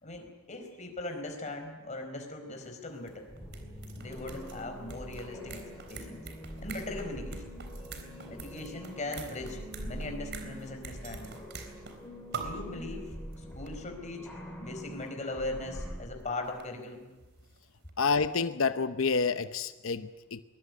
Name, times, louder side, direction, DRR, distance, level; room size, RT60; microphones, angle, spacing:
voice 1, 0.0-3.3 4.0-5.6 5.9-6.2 6.6-7.4 8.3-11.3 12.3-14.3 14.6-17.1, left 2 dB, 35° left, 4 dB, 4.5 m, -39 dB
sound 1, 2.6-2.7 2.9-12.0 12.3-12.7 13.3-13.4 13.7-13.8 15.1-15.2 16.2-17.6 17.9-18.0, right 5 dB, 55° right, 3.6 m, -45 dB
sound 2, 3.3-16.0, equal, 5° left, 5.8 m, -44 dB
voice 2, 18.0-20.4, left 4 dB, 70° left, 11 dB, 0.8 m, -28 dB
22.0 x 20.0 x 9.7 m, 1.1 s
head